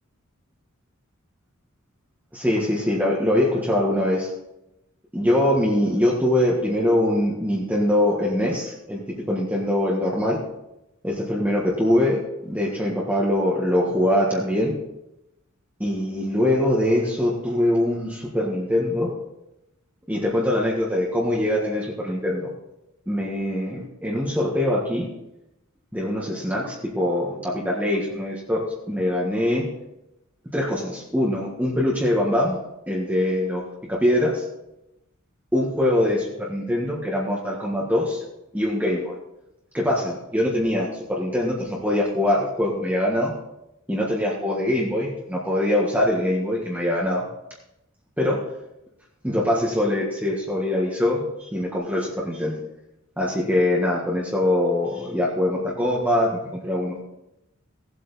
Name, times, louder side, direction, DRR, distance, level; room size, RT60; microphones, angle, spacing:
voice 1, 2.3-4.3 5.1-10.4 11.0-14.7 15.8-19.1 20.1-22.5 23.1-25.1 25.9-29.7 30.5-32.6 32.9-34.4 35.5-38.2 38.5-39.2 39.7-43.3 43.9-47.3 48.2-48.4 49.2-52.6 53.2-57.0, left 1 dB, 10° right, -4 dB, 1.6 m, -23 dB
17.0 x 8.2 x 4.1 m, 0.90 s
head